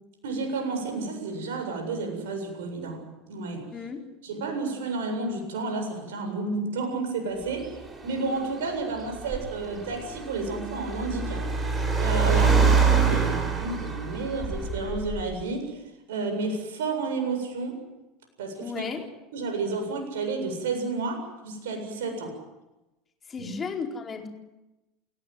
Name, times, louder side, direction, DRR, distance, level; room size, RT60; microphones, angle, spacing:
voice 1, 0.2-3.7 4.2-7.7 8.0-11.4 12.0-15.7 16.1-17.8 18.4-18.9 19.3-22.3 23.4-23.5, right 3 dB, 70° right, 4 dB, 7.7 m, -31 dB
voice 2, 3.7-4.0 12.2-12.6 18.6-19.1 23.3-24.3, left 5 dB, 25° left, 3 dB, 4.5 m, -34 dB
Car, 7.4-15.4, right 5 dB, 20° right, 7.7 m, -26 dB
30.0 x 17.0 x 9.5 m, 1.0 s
figure-of-eight pair, 75°, 0 cm